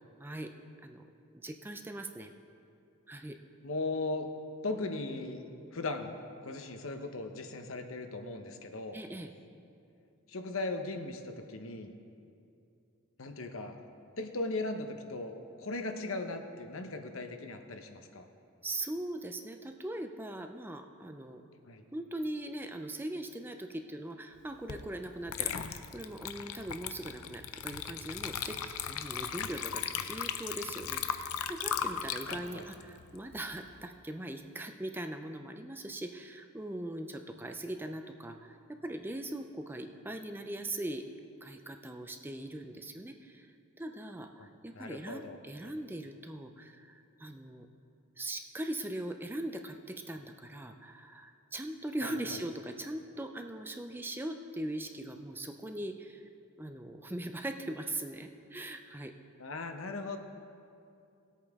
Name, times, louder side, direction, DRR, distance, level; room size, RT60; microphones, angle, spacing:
voice 1, 0.2-0.5 0.8-1.0 1.3-2.3 3.1-3.4 8.9-9.3 18.6-21.4 21.9-41.0 41.4-43.5 43.8-47.7 48.2-56.3 56.6-59.1, right 1 dB, 10° right, 6 dB, 0.4 m, -40 dB
voice 2, 3.6-4.3 4.6-5.4 5.7-6.1 6.4-9.0 10.3-11.9 13.2-13.8 14.2-18.3 21.7-21.8 32.3-32.7 44.4-44.5 44.7-45.4 45.6-45.7 52.0-52.4 59.4-60.2, left 2 dB, 70° left, 6 dB, 0.9 m, -38 dB
Water / Liquid, 24.7-24.9 25.3-33.8, left 8 dB, 90° left, 0.6 m, -37 dB
19.0 x 8.4 x 3.6 m, 2.5 s
head